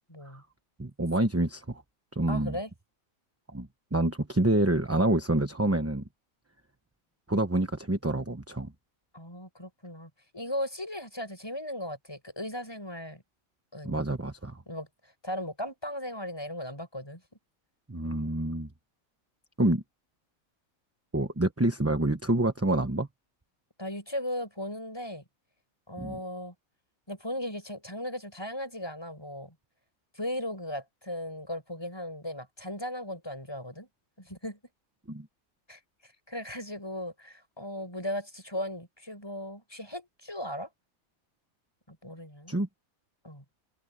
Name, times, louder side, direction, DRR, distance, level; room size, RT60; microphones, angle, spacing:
voice 1, 0.1-0.4 2.3-2.7 9.1-13.2 13.7-14.0 14.7-14.9 15.2-17.2 23.8-25.2 25.9-26.5 27.1-29.5 30.1-33.9 34.2-34.6 35.7-35.8 36.3-40.7 41.9-42.5 43.2-43.4, left 1 dB, 15° left, 6.9 m, -37 dB
voice 2, 0.8-1.8 2.2-2.6 3.5-6.0 7.3-8.7 13.8-14.6 17.9-18.7 19.6-19.8 21.1-23.1 26.0-26.2 35.1-35.3 42.5-42.7, right 1 dB, 10° right, 0.9 m, -27 dB
omnidirectional pair, 1.5 m